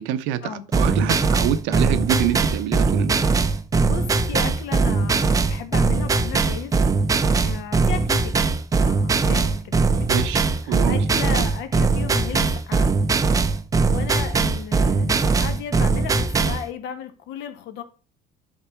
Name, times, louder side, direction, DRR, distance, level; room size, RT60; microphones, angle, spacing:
voice 1, 0.0-3.1 10.1-10.4 10.7-11.0 11.4-11.5, right 11 dB, 80° right, 0.9 m, -26 dB
sound 1, 0.7-16.6, right 4 dB, 20° right, 0.6 m, -20 dB
voice 2, 3.8-6.8 7.4-8.4 8.7-10.3 10.6-12.9 13.9-17.8, left 9 dB, 65° left, 1.5 m, -34 dB
10.5 x 4.1 x 4.5 m
cardioid pair, 155°, 19 cm